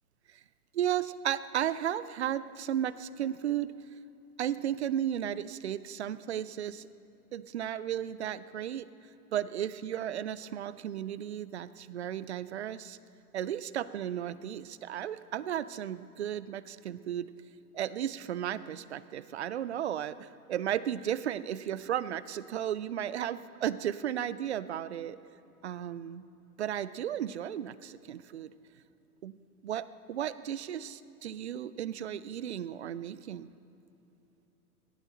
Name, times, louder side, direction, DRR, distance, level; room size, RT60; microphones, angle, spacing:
voice 1, 0.7-3.7 4.4-6.9 7.3-8.9 9.3-13.0 13.3-17.3 17.7-25.2 25.6-26.2 26.6-28.5 29.2-29.4 29.6-33.5, right 10 dB, 45° right, 17 dB, 0.5 m, -34 dB
18.0 x 12.5 x 4.2 m, 2.9 s
figure-of-eight pair, 110°, 47 cm